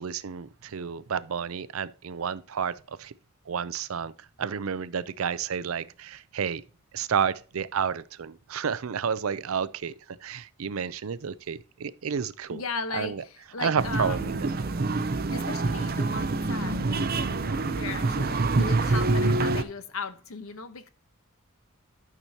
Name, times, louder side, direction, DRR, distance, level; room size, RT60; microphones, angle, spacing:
voice 1, 0.0-3.1 3.5-4.1 4.4-6.6 6.9-12.6 12.9-13.2 13.6-14.5, right 7 dB, 90° right, 0.5 m, -31 dB
voice 2, 12.5-14.5 15.3-20.9, left 4 dB, 90° left, 1.0 m, -37 dB
sound 1, 13.8-19.6, right 3 dB, 50° right, 0.7 m, -26 dB
12.0 x 6.1 x 2.8 m
head